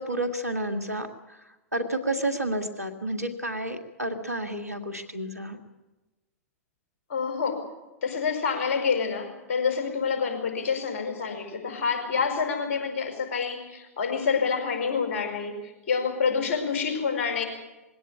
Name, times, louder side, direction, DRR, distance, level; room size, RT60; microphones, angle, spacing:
voice 1, 0.0-1.4 1.7-5.6, right 1 dB, 90° right, 6 dB, 2.1 m, -30 dB
voice 2, 7.1-7.7 8.0-17.4, left 5 dB, 45° left, 4 dB, 5.4 m, -27 dB
21.5 x 17.0 x 8.6 m, 1.1 s
figure-of-eight pair, 100°, 8 cm